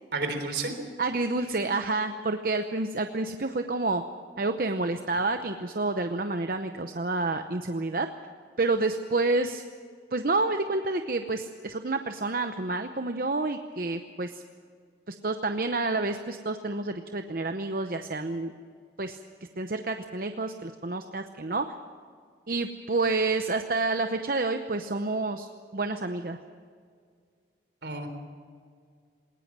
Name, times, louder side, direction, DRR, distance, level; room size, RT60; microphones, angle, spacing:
voice 1, 0.1-0.7 27.8-28.1, right 3 dB, 75° right, 6 dB, 3.7 m, -31 dB
voice 2, 1.0-4.0 4.4-8.1 8.6-9.6 10.1-14.4 15.1-18.5 19.0-19.2 19.6-21.7 22.5-26.4, right 3 dB, 50° right, 7 dB, 0.8 m, -29 dB
20.5 x 19.5 x 7.5 m, 2.1 s
head